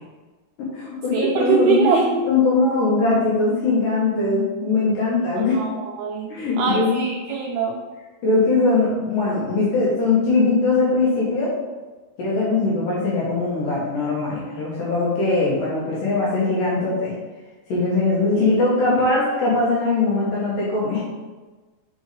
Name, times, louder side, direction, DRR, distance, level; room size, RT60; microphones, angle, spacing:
voice 1, 0.6-5.6 6.3-7.0 8.2-11.6 12.2-17.1 17.7-21.0, left 3 dB, 70° left, -6 dB, 2.2 m, -21 dB
voice 2, 1.1-2.0 5.5-6.3 6.6-7.8 18.4-18.6, right 6 dB, 85° right, -1 dB, 2.2 m, -22 dB
6.1 x 5.3 x 3.2 m, 1.3 s
omnidirectional pair, 5.2 m